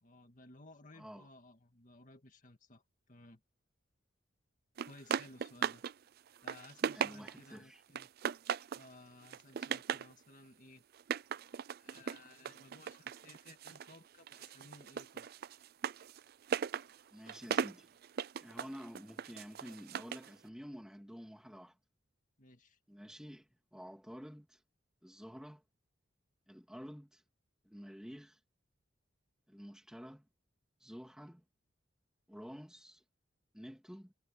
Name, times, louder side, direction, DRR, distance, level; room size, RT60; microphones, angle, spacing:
voice 1, 0.0-3.4 4.8-5.8 6.4-8.1 8.7-10.8 11.5-15.3 22.4-22.8, left 2 dB, 40° left, 2.1 m, -58 dB
voice 2, 0.9-1.3 6.9-7.8 17.1-18.0 18.4-21.8 22.9-24.6 25.0-25.6 26.5-27.2 27.6-28.4 29.5-30.3 30.8-31.4 32.3-33.0 33.5-34.1, equal, 5° right, 3.0 m, -50 dB
sound 1, 4.8-5.9 6.3-7.5 7.9-8.9 9.2-10.1 10.9-14.0 14.3-20.3, right 7 dB, 50° right, 0.4 m, -38 dB
head